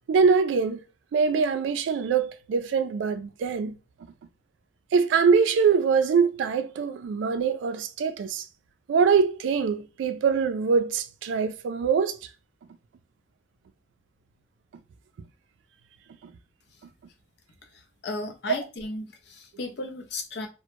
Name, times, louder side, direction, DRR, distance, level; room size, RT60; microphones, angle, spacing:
voice 1, 0.1-0.8 1.1-3.8 4.9-8.4 8.9-12.2 16.2-16.3, right 5 dB, 85° right, 0.3 m, -23 dB
voice 2, 17.7-20.5, left 2 dB, 65° left, 0.5 m, -35 dB
2.1 x 2.0 x 2.9 m
head